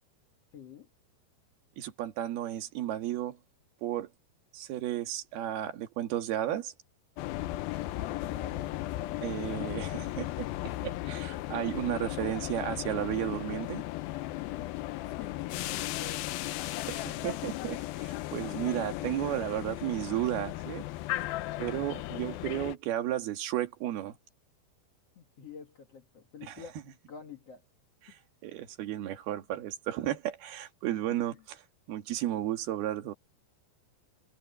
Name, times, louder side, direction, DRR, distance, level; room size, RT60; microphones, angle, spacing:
voice 1, 0.5-0.9 8.0-8.8 11.5-12.4 15.1-16.4 21.5-21.6 25.2-26.8 27.1-27.6 28.1-28.2 31.1-31.4, left 7 dB, 55° left, 1.8 m, -48 dB
voice 2, 1.8-3.4 3.8-4.1 4.5-6.7 9.2-13.8 16.9-20.9 21.6-24.2 26.4-26.6 28.1-31.3 31.9-33.1, right 13 dB, 65° right, 3.7 m, -33 dB
sound 1, 7.2-22.8, left 16 dB, 90° left, 2.1 m, -36 dB
omnidirectional pair, 5.2 m